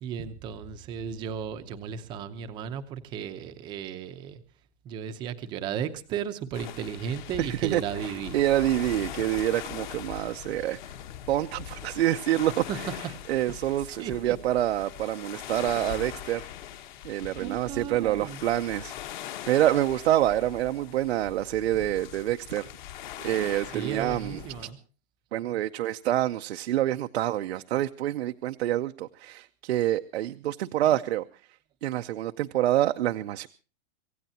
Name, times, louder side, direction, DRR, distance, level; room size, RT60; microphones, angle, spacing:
voice 1, 0.0-4.4 4.8-8.4 12.7-12.8 14.0-14.3 17.4-18.4 23.7-24.8, right 8 dB, 15° right, 0.7 m, -35 dB
sound 1, 6.5-24.7, left 11 dB, 40° left, 1.4 m, -41 dB
voice 2, 7.4-10.8 11.3-12.6 13.3-16.5 17.0-22.7 23.2-24.4 25.3-31.2 31.8-33.5, right 13 dB, 65° right, 0.8 m, -27 dB
26.5 x 16.0 x 2.8 m
supercardioid pair, 180°, 35 cm